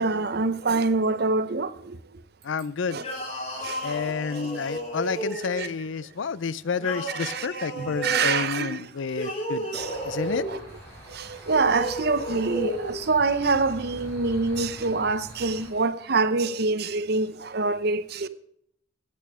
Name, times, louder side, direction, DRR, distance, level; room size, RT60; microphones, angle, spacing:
voice 1, 0.0-2.0 2.9-3.0 3.6-4.1 5.6-5.7 7.1-8.8 9.7-10.0 10.5-10.6 11.1-18.3, right 3 dB, 50° right, 0.7 m, -25 dB
voice 2, 2.4-3.0 3.8-10.5, left 5 dB, 70° left, 0.5 m, -30 dB
sound 1, 3.0-5.7 6.8-8.3 9.1-10.6 11.5-12.9, right 1 dB, 30° left, 3.8 m, -33 dB
sound 2, 9.7-15.7, right 1 dB, 10° left, 6.4 m, -44 dB
15.0 x 8.6 x 4.9 m
head